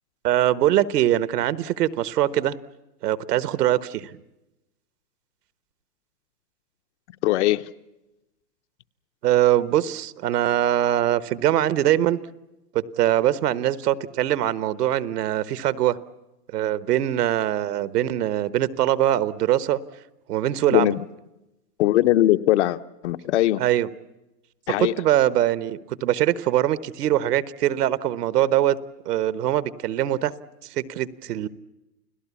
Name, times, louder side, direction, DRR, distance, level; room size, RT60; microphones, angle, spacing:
voice 1, 0.2-2.6 3.0-4.2 9.2-12.2 12.7-16.0 16.5-19.8 20.3-20.9 23.6-23.9 24.8-28.8 29.0-30.3 30.7-31.5, right 12 dB, 70° right, 1.3 m, -22 dB
voice 2, 7.2-7.6 20.7-21.0 21.8-23.6 24.7-24.9, left 15 dB, 45° left, 0.8 m, -20 dB
29.5 x 17.5 x 8.4 m
hypercardioid pair, 155°, 49 cm